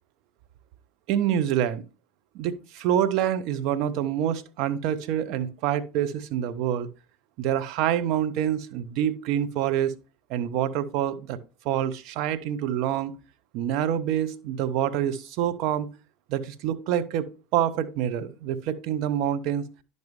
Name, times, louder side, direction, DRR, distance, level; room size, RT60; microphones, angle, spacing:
voice 1, 1.1-1.8 2.3-6.9 7.4-9.9 10.3-11.4 11.6-13.1 13.5-15.9 16.3-19.6, right 10 dB, 55° right, 0.7 m, -26 dB
10.5 x 5.4 x 3.1 m
figure-of-eight pair, 75°, 0 cm